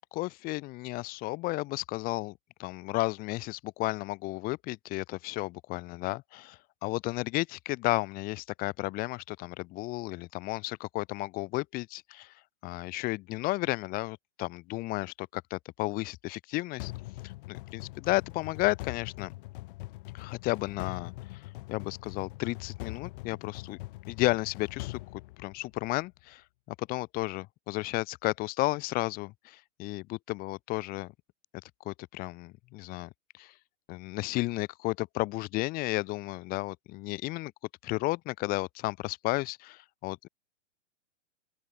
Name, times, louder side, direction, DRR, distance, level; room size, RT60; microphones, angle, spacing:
voice 1, 0.1-2.3 2.6-12.3 12.6-16.9 17.2-19.3 20.1-21.4 21.7-23.8 24.1-31.1 31.8-33.5 33.9-37.5 37.8-40.3, left 20 dB, 25° left, 0.7 m, -33 dB
sound 1, 16.8-26.0, left 19 dB, 45° left, 1.1 m, -42 dB
open air
hypercardioid pair, 115°, 36 cm